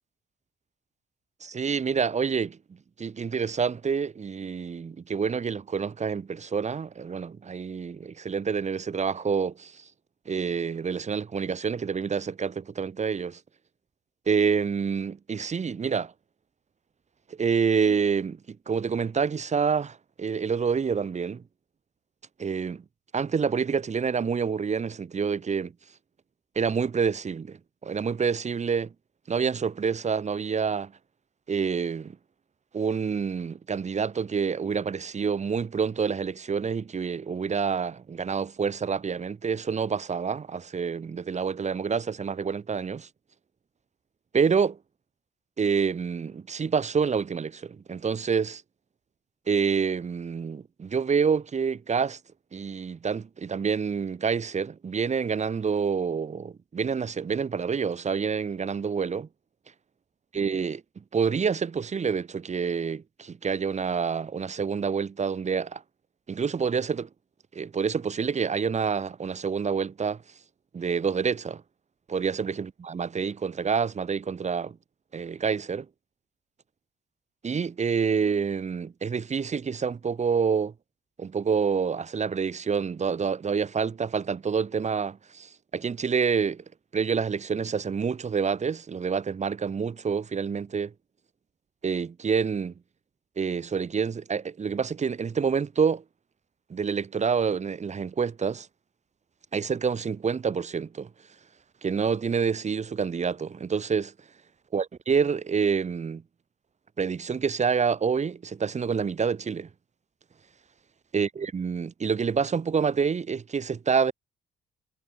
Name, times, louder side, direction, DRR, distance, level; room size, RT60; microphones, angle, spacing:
voice 1, 1.4-2.6 3.0-9.8 10.2-13.4 14.3-16.1 17.3-21.4 22.4-22.8 23.1-25.7 26.5-28.9 29.3-30.9 31.5-32.2 32.7-43.1 44.3-44.8 45.6-48.6 49.5-52.2 52.5-59.3 60.3-65.8 66.3-67.1 67.5-70.2 70.7-71.6 72.1-74.8 75.1-75.9 77.4-80.7 81.2-86.6 86.9-90.9 91.8-92.7 93.4-96.0 96.7-98.7 99.5-101.1 101.8-104.1 104.7-106.2 107.0-109.7 111.1-114.1, right 6 dB, 35° right, 1.5 m, -27 dB
cardioid pair, 90°, 20 cm